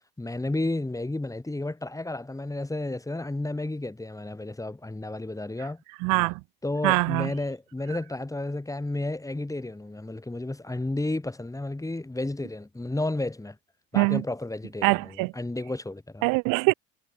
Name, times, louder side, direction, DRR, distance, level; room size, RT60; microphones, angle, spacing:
voice 1, 0.2-5.8 6.6-13.6 13.9-16.3, left 2 dB, 10° left, 4.7 m, -32 dB
voice 2, 6.0-6.4 6.8-7.3 13.9-14.2 14.8-15.3 16.2-16.7, right 29 dB, 75° right, 1.7 m, -23 dB
supercardioid pair, 85°, 34 cm